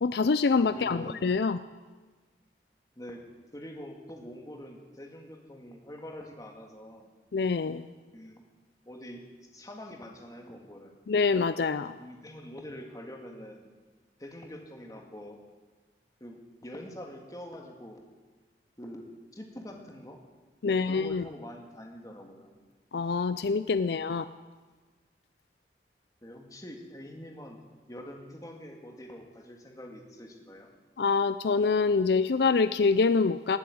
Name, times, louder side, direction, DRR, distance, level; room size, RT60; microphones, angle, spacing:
voice 1, 0.0-1.6 7.3-7.9 11.1-12.0 20.6-21.2 22.9-24.3 31.0-33.6, left 4 dB, 70° left, 13 dB, 0.5 m, -25 dB
voice 2, 0.7-1.3 3.0-3.2 3.5-7.1 8.1-8.4 8.9-9.2 9.5-10.9 12.0-13.7 14.2-15.4 16.2-18.0 18.8-20.2 20.7-22.5 23.8-24.0 26.2-27.6 27.9-30.7, equal, 20° left, 2 dB, 2.1 m, -45 dB
19.5 x 8.7 x 8.6 m, 1.4 s
head